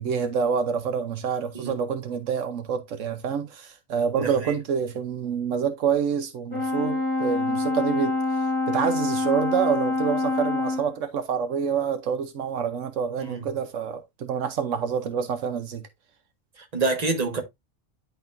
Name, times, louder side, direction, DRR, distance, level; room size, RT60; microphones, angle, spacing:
voice 1, 0.0-8.2 8.7-15.8, right 7 dB, 75° right, 1.1 m, -27 dB
Brass instrument, 6.5-10.9, left 3 dB, 15° left, 2.8 m, -26 dB
voice 2, 16.7-17.4, right 3 dB, 30° right, 1.4 m, -26 dB
10.5 x 3.9 x 2.5 m
omnidirectional pair, 1.3 m